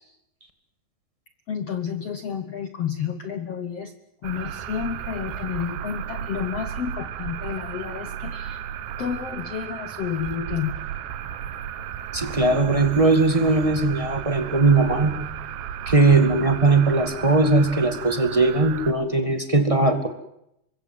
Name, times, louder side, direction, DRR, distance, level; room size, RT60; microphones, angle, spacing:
voice 1, 1.5-3.9 4.2-8.6 9.0-10.8, left 8 dB, 75° left, 9 dB, 1.4 m, -30 dB
sound 1, 4.2-18.9, right 10 dB, 80° right, 3.3 m, -34 dB
voice 2, 12.1-15.3 15.8-20.1, right 3 dB, 20° right, 7 dB, 1.0 m, -19 dB
25.5 x 22.5 x 7.8 m, 0.80 s
omnidirectional pair, 4.8 m